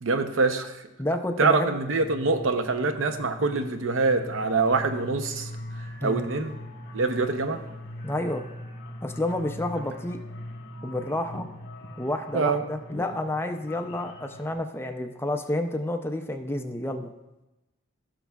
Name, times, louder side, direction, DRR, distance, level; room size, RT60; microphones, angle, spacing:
voice 1, 0.0-0.8 1.4-5.5 6.0-6.5 6.9-7.6 12.3-12.6, right 4 dB, 75° right, 8 dB, 0.7 m, -25 dB
voice 2, 1.0-1.8 6.0-6.3 8.0-8.4 9.0-10.2 10.8-11.5 12.0-17.1, left 1 dB, 10° left, 5 dB, 0.4 m, -30 dB
sound 1, 1.9-14.6, left 1 dB, 60° left, 1.4 m, -41 dB
16.0 x 6.1 x 2.3 m, 1.0 s
head